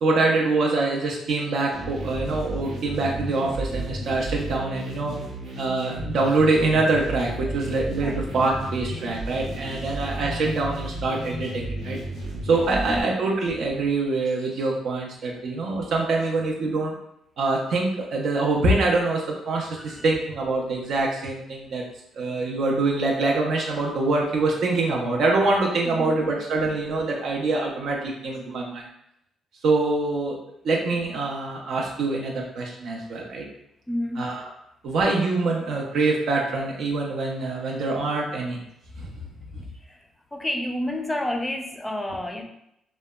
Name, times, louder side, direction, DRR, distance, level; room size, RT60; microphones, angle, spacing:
voice 1, 0.0-5.2 5.6-12.0 12.4-16.9 17.4-21.8 22.1-28.9 29.6-30.4 30.6-33.4 34.2-34.5 34.8-38.6 39.0-39.1 39.5-39.6, right 3 dB, 70° right, -1 dB, 0.4 m, -24 dB
sound 1, 1.7-13.0, right 1 dB, 90° right, 0.9 m, -33 dB
voice 2, 12.7-13.1 19.7-20.1 25.8-26.1 33.9-34.3 39.8-42.4, left 1 dB, 15° left, 3 dB, 0.4 m, -30 dB
2.8 x 2.1 x 2.2 m, 0.78 s
cardioid pair, 90°, 0 cm